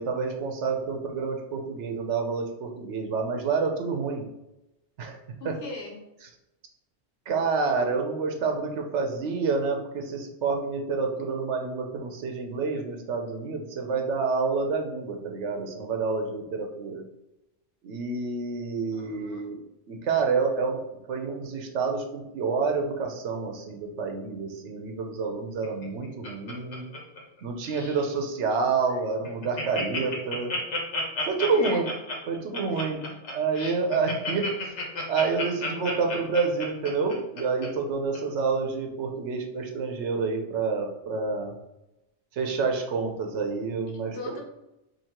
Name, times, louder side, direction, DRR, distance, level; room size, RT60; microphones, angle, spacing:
voice 1, 0.0-4.2 5.0-5.2 5.4-5.6 7.3-17.0 17.8-19.6 19.9-20.8 21.1-26.8 27.4-30.5 31.3-31.9 32.3-34.7 35.1-41.5 42.3-44.3, right 4 dB, 85° right, 3 dB, 1.0 m, -28 dB
voice 2, 5.4-6.0 18.9-19.5 31.5-31.9 32.7-32.8 44.0-44.4, left 3 dB, 65° left, 0 dB, 1.2 m, -40 dB
Laughter, 25.6-27.4 27.7-28.0 28.5-28.6 28.9-29.0 29.2-37.7 38.1-38.2, left 2 dB, 80° left, 1.4 m, -32 dB
5.9 x 2.8 x 2.9 m, 0.92 s
omnidirectional pair, 1.2 m